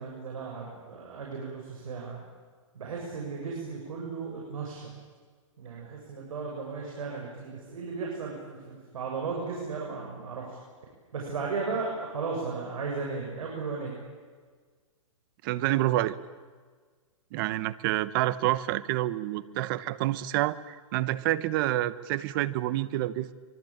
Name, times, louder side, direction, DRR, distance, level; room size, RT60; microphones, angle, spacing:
voice 1, 0.0-2.2 2.7-4.9 5.6-10.4 11.1-14.0, right 4 dB, 80° right, -1 dB, 7.5 m, -35 dB
voice 2, 15.4-16.1 17.3-23.3, right 15 dB, 40° right, 16 dB, 1.1 m, -28 dB
25.0 x 23.5 x 8.9 m, 1.5 s
hypercardioid pair, 150°, 17 cm